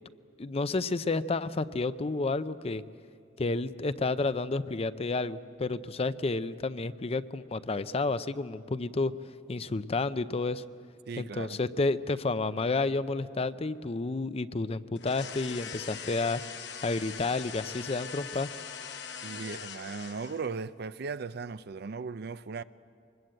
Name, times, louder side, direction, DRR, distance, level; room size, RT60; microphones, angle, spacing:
voice 1, 0.4-2.8 3.4-9.1 9.5-10.6 11.2-16.4 16.8-18.5, left 3 dB, 35° left, 0.5 m, -30 dB
voice 2, 11.1-11.6 19.2-22.6, right 4 dB, 60° right, 0.5 m, -37 dB
sound 1, 15.0-20.6, left 7 dB, 70° left, 1.0 m, -42 dB
24.0 x 20.5 x 7.9 m
head